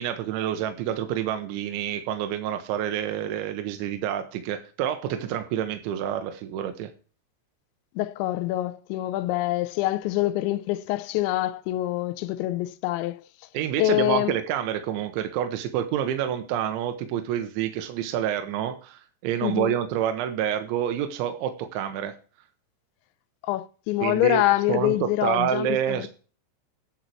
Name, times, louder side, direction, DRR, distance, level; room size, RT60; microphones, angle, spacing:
voice 1, 0.0-6.9 13.5-22.1 24.0-26.1, right 10 dB, 85° right, 3.3 m, -28 dB
voice 2, 8.0-13.2 13.8-14.3 19.4-19.7 23.4-26.1, left 16 dB, 85° left, 2.9 m, -25 dB
11.0 x 7.8 x 4.6 m
omnidirectional pair, 5.3 m